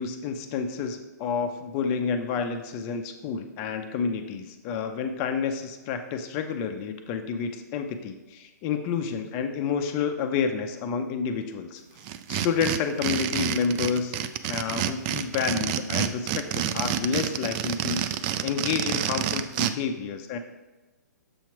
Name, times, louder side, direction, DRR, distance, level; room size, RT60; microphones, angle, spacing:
voice 1, 0.0-11.8 12.3-14.2 14.5-20.4, left 6 dB, 30° left, 7 dB, 0.5 m, -29 dB
sound 1, 12.0-19.7, right 11 dB, 30° right, 0.3 m, -28 dB
7.0 x 2.9 x 5.8 m, 1.1 s
hypercardioid pair, 130°, 10 cm